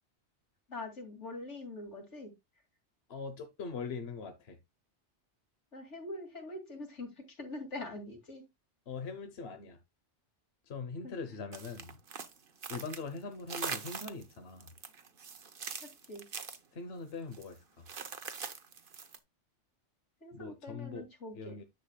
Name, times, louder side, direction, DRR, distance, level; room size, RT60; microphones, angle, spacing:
voice 1, 0.7-2.3 5.7-8.4 11.0-11.1 15.8-16.2 20.2-21.6, left 2 dB, 85° left, 2.8 m, -44 dB
voice 2, 3.1-4.6 8.9-9.8 10.6-12.0 12.7-14.7 16.7-17.9 20.3-21.1 21.3-21.6, left 4 dB, 65° left, 1.2 m, -42 dB
sound 1, 11.5-13.2 13.5-14.3 14.6-16.6 17.3-17.5 17.9-19.2, right 6 dB, 50° right, 1.1 m, -42 dB
10.5 x 6.8 x 2.3 m
omnidirectional pair, 1.2 m